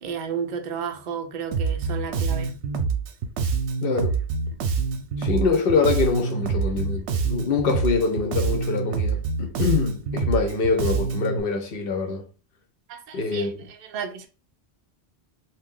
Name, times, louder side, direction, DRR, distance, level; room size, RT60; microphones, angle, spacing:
voice 1, 0.0-2.5 12.9-13.5 13.8-14.3, right 6 dB, 55° right, 0.6 m, -32 dB
Bass guitar, 1.5-11.4, right 5 dB, 85° right, 0.9 m, -26 dB
voice 2, 3.8-4.2 5.2-12.3 13.1-13.7, left 4 dB, 60° left, 0.8 m, -24 dB
2.7 x 2.2 x 3.6 m
omnidirectional pair, 1.1 m